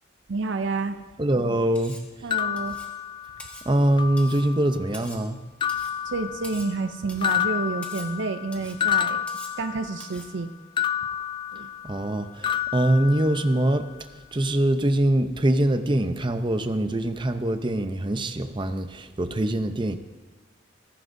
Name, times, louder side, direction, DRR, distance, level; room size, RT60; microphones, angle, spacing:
voice 1, 0.3-1.0 2.2-2.8 6.0-9.2 9.6-10.5 11.5-11.7, right 3 dB, 70° right, 9 dB, 0.6 m, -29 dB
voice 2, 1.2-2.0 3.7-5.4 11.8-13.9 14.3-20.0, right 1 dB, 25° right, 8 dB, 0.6 m, -23 dB
Cutlery silverware, 1.8-2.1 2.6-3.0 3.4-3.7 4.2-4.5 4.9-5.3 5.7-6.0 6.4-6.8 7.1-7.4 7.8-8.1 8.5-8.8 9.3-9.6 10.0-10.3, left 1 dB, 5° left, 1.3 m, -44 dB
sound 1, 2.3-3.6 4.0-4.8 5.6-6.9 7.2-10.2 10.8-12.1 12.4-13.8, left 9 dB, 25° left, 0.3 m, -29 dB
15.0 x 14.5 x 2.7 m, 1.3 s
head